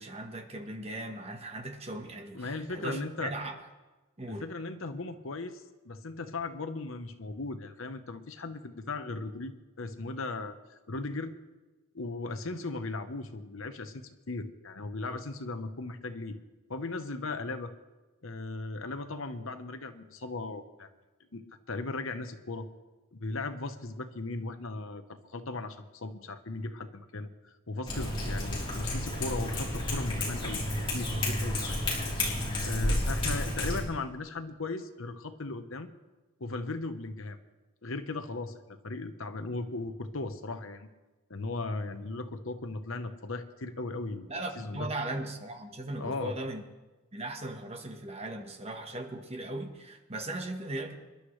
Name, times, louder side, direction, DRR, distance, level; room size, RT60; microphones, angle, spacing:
voice 1, 0.0-3.6 4.2-4.5 44.3-46.6 47.1-50.9, right 1 dB, 30° right, 4 dB, 1.3 m, -38 dB
voice 2, 2.3-3.3 4.3-11.3 11.9-16.4 16.7-17.7 18.2-20.9 21.3-21.4 21.7-22.7 23.1-27.3 27.7-30.6 30.9-31.8 32.6-35.9 36.4-37.4 37.8-38.6 38.8-40.9 41.3-44.3 44.6-44.9 46.0-46.4, left 3 dB, 70° left, 9 dB, 1.0 m, -37 dB
Cat, 27.9-33.8, left 1 dB, 25° left, 3.7 m, -31 dB
27.0 x 11.5 x 3.3 m, 1.2 s
head